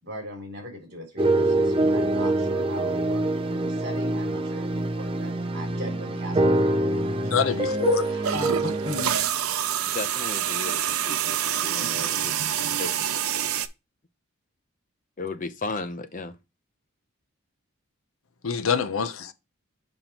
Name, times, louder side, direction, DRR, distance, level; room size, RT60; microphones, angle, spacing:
voice 1, 0.0-7.4 8.1-9.2, equal, 50° right, 3.6 m, -38 dB
sound 1, 1.2-9.1, right 2 dB, 25° right, 0.5 m, -25 dB
voice 2, 7.3-8.1 18.4-19.3, left 7 dB, 75° left, 0.7 m, -25 dB
sound 2, 8.2-13.7, right 10 dB, 90° right, 0.6 m, -27 dB
voice 3, 9.9-12.3 12.8-13.2 15.2-16.4, left 3 dB, 40° left, 0.6 m, -35 dB
6.9 x 5.7 x 2.9 m
head